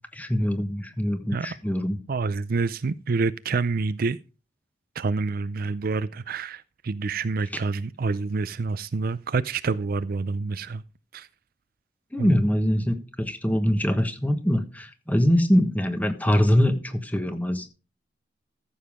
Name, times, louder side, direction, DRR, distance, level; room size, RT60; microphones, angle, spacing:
voice 1, 0.1-2.0 12.1-17.7, equal, 10° left, 1.3 m, -23 dB
voice 2, 2.1-4.2 5.0-10.8 11.1-11.3 12.2-12.3, right 4 dB, 55° right, 0.5 m, -27 dB
14.0 x 7.1 x 3.6 m
head